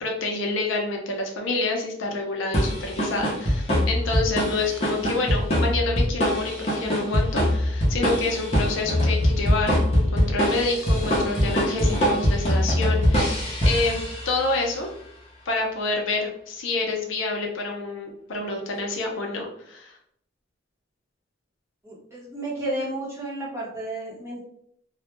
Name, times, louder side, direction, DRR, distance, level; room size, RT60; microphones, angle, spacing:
voice 1, 0.0-14.9 15.5-20.0, left 3 dB, 75° left, 1 dB, 0.5 m, -28 dB
sound 1, 2.5-14.5, equal, 30° left, 0.6 m, -23 dB
voice 2, 21.8-24.4, right 1 dB, 15° right, -6 dB, 0.7 m, -32 dB
2.2 x 2.1 x 2.9 m, 0.70 s
head